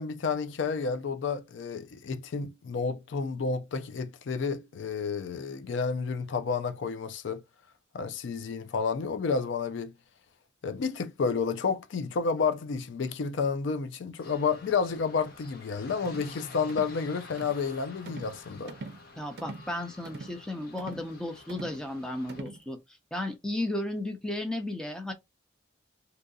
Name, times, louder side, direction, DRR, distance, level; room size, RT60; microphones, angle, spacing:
voice 1, 0.0-7.4 7.9-9.9 10.6-18.7, left 5 dB, 70° left, 0.4 m, -30 dB
sound 1, 14.2-22.4, left 3 dB, 50° left, 0.8 m, -50 dB
sound 2, 16.0-16.3 16.7-17.0 17.4-17.6 18.1-18.4 18.7-19.0 19.4-19.7 20.0-20.4 20.8-21.1 21.5-21.8 22.3-22.6, right 3 dB, 55° right, 0.5 m, -43 dB
voice 2, 19.2-22.8 23.1-25.1, left 1 dB, 5° left, 0.6 m, -34 dB
2.7 x 2.6 x 3.7 m
head